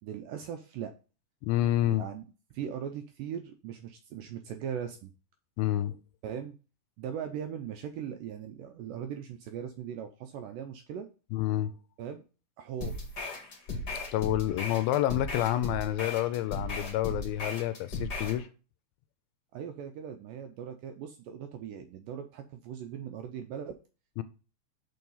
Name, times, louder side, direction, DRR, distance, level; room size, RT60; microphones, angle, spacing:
voice 1, 0.0-0.9 1.9-2.2 2.5-5.1 6.2-6.5 7.0-11.1 12.0-12.2 12.6-12.9 19.5-23.8, right 8 dB, 80° right, 6 dB, 2.0 m, -39 dB
voice 2, 1.4-2.0 5.6-5.9 11.3-11.7 14.1-18.5 24.2-24.3, left 13 dB, 80° left, 13 dB, 2.3 m, -28 dB
sound 1, 12.8-18.4, left 2 dB, 40° left, 1.5 m, -36 dB
6.6 x 4.6 x 5.4 m, 0.35 s
omnidirectional pair, 4.4 m